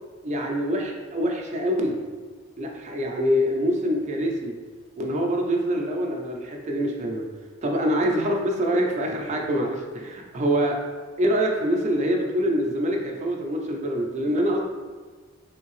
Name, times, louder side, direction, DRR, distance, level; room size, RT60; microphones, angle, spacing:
voice 1, 0.2-2.0 2.6-4.5 5.0-7.3 7.6-10.8 11.2-14.6, equal, 35° right, 0 dB, 0.4 m, -25 dB
3.5 x 2.7 x 3.0 m, 1.5 s
head